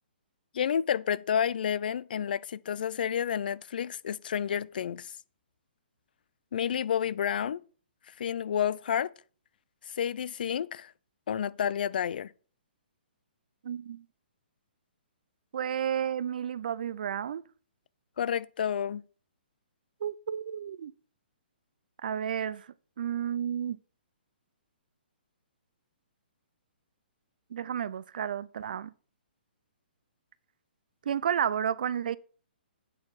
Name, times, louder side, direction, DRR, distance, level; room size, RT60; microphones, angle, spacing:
voice 1, 0.5-5.1 6.5-7.6 8.1-9.1 9.9-10.9 11.3-12.3 18.2-19.0, left 8 dB, 60° left, 0.4 m, -30 dB
voice 2, 13.6-14.0 15.5-17.4 20.0-20.9 22.0-22.7 23.0-23.8 27.5-28.9 31.1-32.2, right 9 dB, 55° right, 0.4 m, -31 dB
8.4 x 4.2 x 4.7 m
hypercardioid pair, 165°, 6 cm